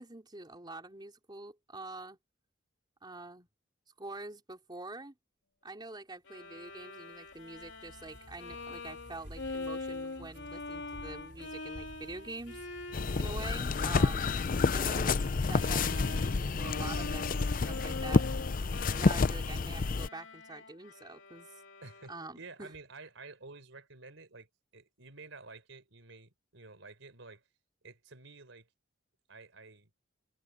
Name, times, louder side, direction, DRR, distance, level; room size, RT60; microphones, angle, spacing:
voice 1, 0.0-2.2 3.0-3.5 4.0-5.2 5.6-12.7 13.2-14.3 14.7-15.2 15.5-18.3 18.9-21.5 22.1-22.7, right 2 dB, 25° right, 3.8 m, -45 dB
Bowed string instrument, 6.3-22.3, left 3 dB, 80° left, 3.4 m, -44 dB
sound 1, 6.5-19.9, right 1 dB, 60° right, 4.1 m, -54 dB
sound 2, 12.9-20.1, left 4 dB, 45° left, 0.5 m, -29 dB
voice 2, 12.9-13.2 21.8-27.4 27.8-28.7 29.3-29.9, right 3 dB, 80° right, 4.0 m, -51 dB
head